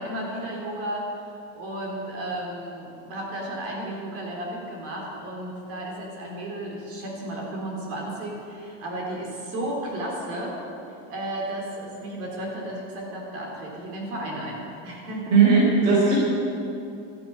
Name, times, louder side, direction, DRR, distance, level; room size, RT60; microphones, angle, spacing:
voice 1, 0.0-10.6 11.1-15.4, right 1 dB, 35° right, -1 dB, 3.6 m, -33 dB
voice 2, 15.3-16.1, right 4 dB, 75° right, -5 dB, 4.4 m, -17 dB
13.0 x 11.5 x 8.7 m, 2.7 s
cardioid pair, 180°, 38 cm